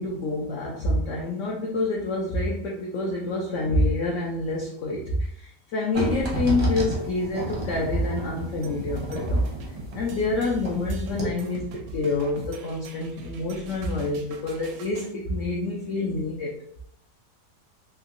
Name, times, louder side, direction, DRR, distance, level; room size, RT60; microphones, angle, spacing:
voice 1, 0.0-9.4 9.9-16.6, left 2 dB, 75° left, -2 dB, 0.7 m, -27 dB
sound 1, 5.9-10.8 11.1-11.2, right 1 dB, 40° right, 0.5 m, -30 dB
sound 2, 8.6-15.1, right 2 dB, 80° right, 1.2 m, -41 dB
3.6 x 2.9 x 2.5 m, 0.67 s
omnidirectional pair, 1.9 m